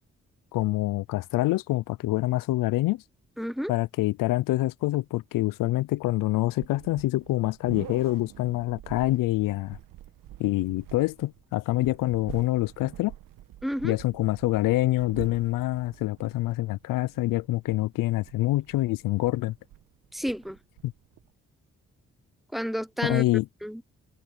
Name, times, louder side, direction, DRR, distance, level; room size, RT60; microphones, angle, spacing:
voice 1, 0.5-3.0 3.7-9.8 10.4-13.1 13.8-19.5 20.8-20.9 23.0-23.5, left 17 dB, 80° left, 0.6 m, -26 dB
voice 2, 3.4-3.7 13.6-14.0 20.1-20.6 22.5-23.2 23.6-23.8, equal, ahead, 0.6 m, -30 dB
sound 1, 6.6-21.3, right 13 dB, 80° right, 1.4 m, -47 dB
supercardioid pair, 45°, 32 cm